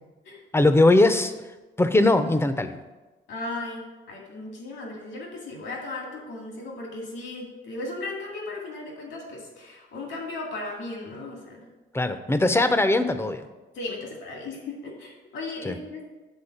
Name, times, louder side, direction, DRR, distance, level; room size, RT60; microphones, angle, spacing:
voice 1, 0.5-1.3 1.8-2.8 11.9-13.5 15.6-15.8, left 2 dB, 10° left, 10 dB, 0.6 m, -20 dB
voice 2, 3.3-11.7 13.7-16.0, left 2 dB, 80° left, -1 dB, 2.1 m, -36 dB
7.2 x 3.9 x 6.6 m, 1.1 s
cardioid pair, 90°, 20 cm